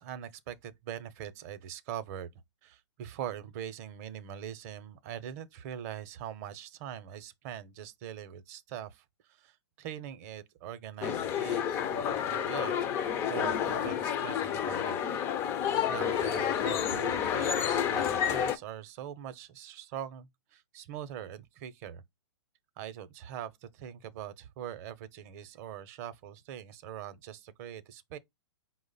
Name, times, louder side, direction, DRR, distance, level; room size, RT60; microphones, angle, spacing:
voice 1, 0.0-2.3 2.6-12.7 13.2-15.0 15.9-22.0 22.8-28.2, right 10 dB, 35° right, 0.6 m, -42 dB
sound 1, 11.0-18.6, left 9 dB, 20° left, 0.3 m, -30 dB
4.8 x 2.0 x 4.0 m
hypercardioid pair, 140°, 14 cm